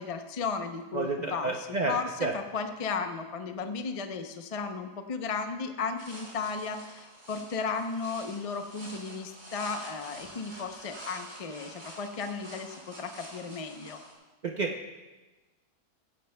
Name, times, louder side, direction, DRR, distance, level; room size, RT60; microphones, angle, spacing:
voice 1, 0.0-14.0, left 5 dB, 45° left, 6 dB, 0.4 m, -35 dB
voice 2, 0.9-2.3 14.4-14.9, right 3 dB, 55° right, 1 dB, 0.4 m, -31 dB
sound 1, 6.0-14.1, right 1 dB, 30° right, 2.9 m, -47 dB
15.5 x 15.0 x 2.2 m, 1.2 s
omnidirectional pair, 1.7 m